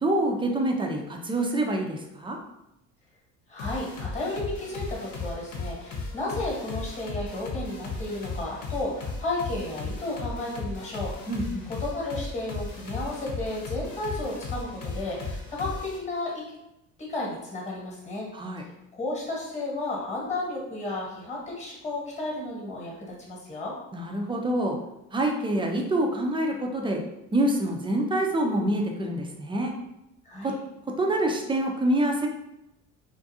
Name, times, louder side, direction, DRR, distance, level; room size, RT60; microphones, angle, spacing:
voice 1, 0.0-2.4 11.3-11.7 18.3-18.6 23.9-24.8 25.1-27.0 27.3-29.7 30.4-30.6 31.0-32.3, right 1 dB, 15° right, 1 dB, 0.3 m, -26 dB
voice 2, 3.5-11.1 11.8-16.4 17.0-18.3 18.9-23.7 30.2-30.5, left 2 dB, 20° left, -3 dB, 1.1 m, -33 dB
sound 1, 3.6-16.0, left 3 dB, 55° left, 0.8 m, -36 dB
2.5 x 2.4 x 2.6 m, 0.88 s
supercardioid pair, 90°, 36 cm